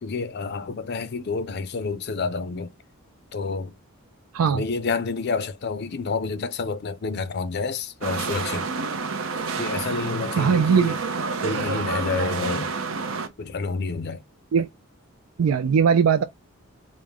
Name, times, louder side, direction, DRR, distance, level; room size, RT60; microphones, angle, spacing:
voice 1, 0.0-2.7 3.3-3.7 4.4-8.7 9.6-11.0 11.4-12.7 13.4-14.2, left 4 dB, 50° left, 0.5 m, -29 dB
sound 1, 8.0-13.3, right 4 dB, 70° right, 0.8 m, -29 dB
voice 2, 10.4-10.9 14.5-14.7 15.4-16.2, right 6 dB, 90° right, 0.4 m, -19 dB
5.0 x 2.1 x 3.5 m
head